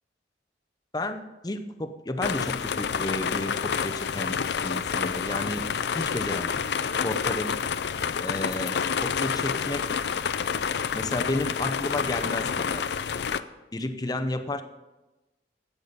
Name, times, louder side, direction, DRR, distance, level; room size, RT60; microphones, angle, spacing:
voice 1, 0.9-4.3 4.6-6.6 7.0-7.6 8.2-10.0 10.9-13.0 13.7-14.6, left 1 dB, 20° left, 8 dB, 0.6 m, -32 dB
sound 1, 2.2-13.4, left 6 dB, 65° left, 0.4 m, -28 dB
12.5 x 8.5 x 5.2 m, 1.1 s
head